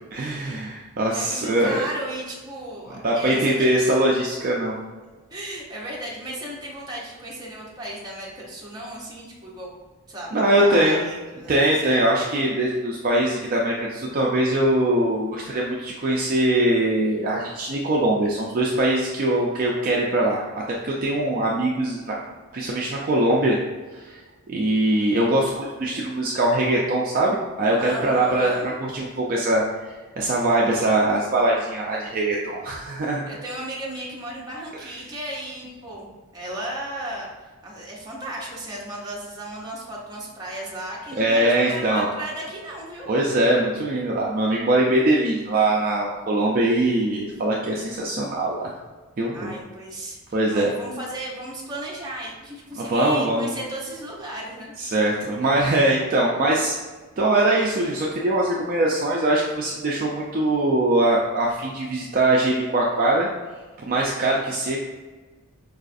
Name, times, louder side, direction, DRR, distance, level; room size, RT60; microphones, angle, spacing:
voice 1, 0.1-1.8 2.9-4.8 10.3-11.0 11.5-20.4 20.8-22.2 22.5-23.6 23.9-24.2 24.5-29.8 30.2-33.2 34.8-34.9 41.2-42.1 43.1-48.7 49.2-49.5 50.3-50.7 52.8-53.5 54.8-56.8 57.2-63.3 63.8-64.8, right 1 dB, 40° right, -3 dB, 0.3 m, -22 dB
voice 2, 0.7-3.7 5.3-9.7 10.1-12.0 27.8-28.7 33.3-43.1 49.3-50.2 50.5-54.7, right 1 dB, 15° right, -4 dB, 0.7 m, -35 dB
4.7 x 2.4 x 2.5 m, 1.3 s
head